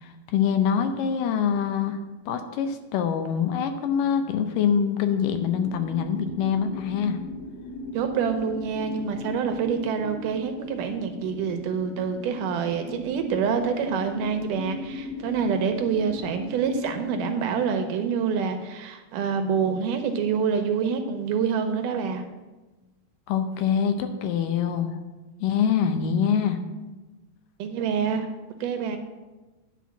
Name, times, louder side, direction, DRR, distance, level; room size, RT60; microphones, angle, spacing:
voice 1, 0.0-2.0 2.3-7.2 23.3-25.0 25.4-26.6, left 7 dB, 80° left, 7 dB, 2.2 m, -24 dB
sound 1, 5.2-17.0, left 1 dB, 60° left, 2.3 m, -38 dB
voice 2, 7.9-22.3 27.6-28.3 28.6-29.0, right 6 dB, 75° right, 7 dB, 2.1 m, -26 dB
10.0 x 4.3 x 7.2 m, 1.2 s
omnidirectional pair, 4.1 m